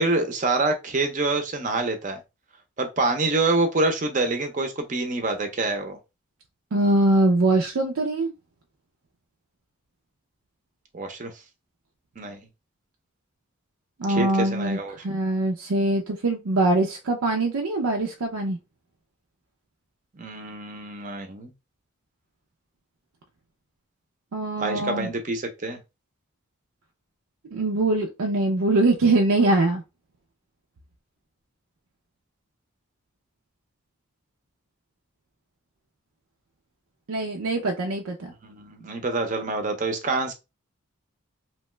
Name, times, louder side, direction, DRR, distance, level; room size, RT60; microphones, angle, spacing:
voice 1, 0.0-2.2 2.8-6.0 10.9-11.3 12.2-12.4 14.1-15.0 20.2-21.5 24.6-25.8 38.4-40.3, right 2 dB, 35° right, 0.6 m, -26 dB
voice 2, 6.7-8.3 14.0-14.8 15.0-18.6 24.3-25.1 27.5-29.8 37.1-38.3, right 2 dB, 85° right, 0.5 m, -22 dB
2.9 x 2.2 x 3.1 m
head